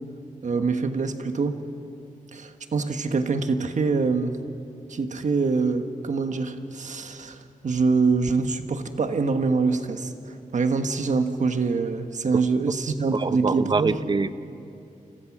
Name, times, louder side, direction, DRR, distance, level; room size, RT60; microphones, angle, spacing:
voice 1, 0.4-1.6 2.3-4.4 4.9-14.0, right 4 dB, 65° right, 7 dB, 1.4 m, -25 dB
voice 2, 13.1-14.3, right 4 dB, 35° right, 12 dB, 0.7 m, -24 dB
29.0 x 26.0 x 6.2 m, 2.7 s
wide cardioid pair, 150°, 14 cm